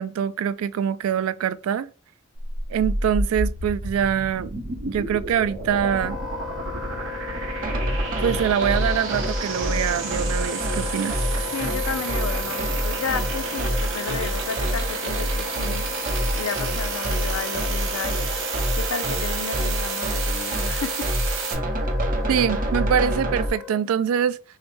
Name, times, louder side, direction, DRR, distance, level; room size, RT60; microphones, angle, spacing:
voice 1, 0.0-1.9 2.7-4.5 4.8-6.2 8.2-11.2 22.3-24.4, right 8 dB, 80° right, 0.3 m, -24 dB
sound 1, 2.4-21.5, right 3 dB, 65° right, 1.0 m, -31 dB
Wind instrument woodwind instrument, 5.6-23.9, left 8 dB, ahead, 0.5 m, -37 dB
sound 2, 7.6-23.5, equal, 40° right, 0.8 m, -27 dB
voice 2, 11.5-15.9 16.3-18.3 18.7-21.1, left 6 dB, 90° left, 0.5 m, -32 dB
5.6 x 2.2 x 3.1 m
head